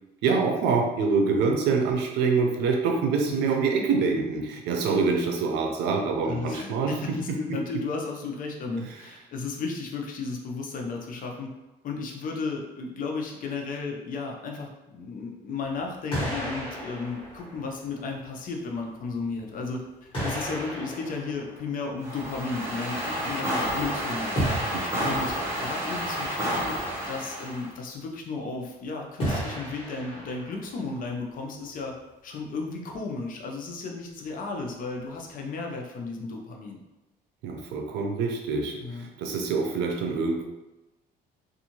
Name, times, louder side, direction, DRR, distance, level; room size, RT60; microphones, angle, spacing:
voice 1, 0.2-7.6 24.7-25.1 37.4-40.4, right 4 dB, 85° right, 2 dB, 0.5 m, -26 dB
voice 2, 6.2-11.5 11.8-24.4 25.0-32.0 32.2-36.8 38.8-39.1, left 4 dB, 55° left, 1 dB, 0.6 m, -34 dB
sound 1, 15.6-15.8 16.1-18.2 19.2-19.3 20.1-22.3 24.3-26.0 29.2-30.8, right 1 dB, 30° left, 1.3 m, -33 dB
sound 2, 22.0-27.7, equal, 15° right, 0.8 m, -30 dB
2.6 x 2.4 x 2.9 m, 1.0 s
cardioid pair, 110°, 17 cm